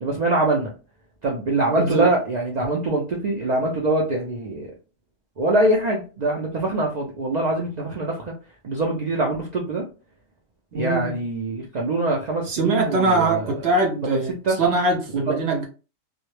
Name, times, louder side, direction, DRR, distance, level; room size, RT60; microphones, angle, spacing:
voice 1, 0.0-0.7 1.2-4.7 5.4-8.3 8.6-9.8 10.7-13.4 14.0-14.2 14.4-14.6, right 2 dB, 85° right, 0.3 m, -23 dB
voice 2, 1.8-2.1 10.7-11.2 12.5-15.6, right 2 dB, 65° right, 0.7 m, -22 dB
2.2 x 2.0 x 3.0 m
omnidirectional pair, 1.4 m